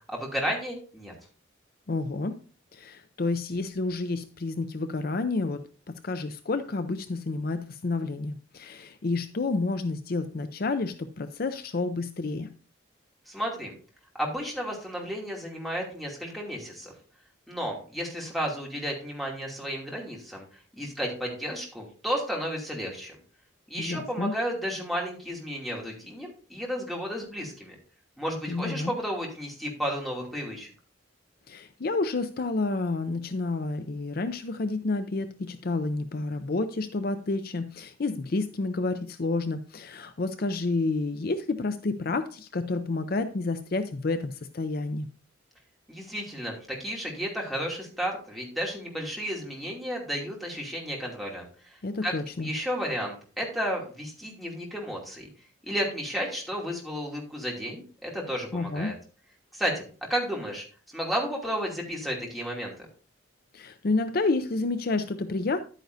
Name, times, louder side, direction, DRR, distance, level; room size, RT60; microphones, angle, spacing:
voice 1, 0.1-1.1 13.3-13.7 14.2-16.9 17.5-20.5 20.7-23.1 23.7-27.7 28.2-30.7 45.9-55.3 55.6-58.9 59.5-59.8 60.1-60.6 60.9-62.7, equal, ahead, -2 dB, 2.6 m, -32 dB
voice 2, 1.9-2.4 2.7-12.5 23.8-24.3 28.5-28.9 31.5-45.1 51.8-52.5 58.5-59.0 63.5-65.6, left 3 dB, 50° left, 10 dB, 0.5 m, -30 dB
10.5 x 9.1 x 2.7 m, 0.39 s
head